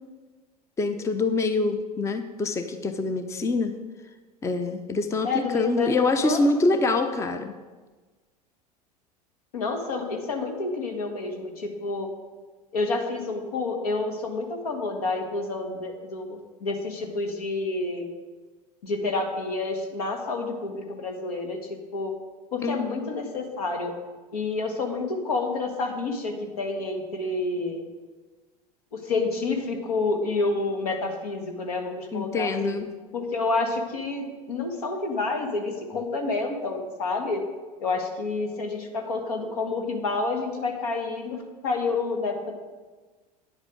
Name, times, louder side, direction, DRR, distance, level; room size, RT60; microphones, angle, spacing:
voice 1, 0.8-3.7 4.4-7.5 22.6-23.1 32.1-32.9, left 3 dB, 15° left, 8 dB, 0.6 m, -25 dB
voice 2, 5.2-6.8 9.5-12.1 12.7-18.1 18.8-21.6 21.9-22.1 22.5-23.9 24.3-27.8 28.9-32.8 33.1-37.4 37.8-41.4 41.6-42.5, left 3 dB, 70° left, 3 dB, 1.7 m, -29 dB
9.7 x 8.2 x 5.1 m, 1.3 s
figure-of-eight pair, 80°, 20 cm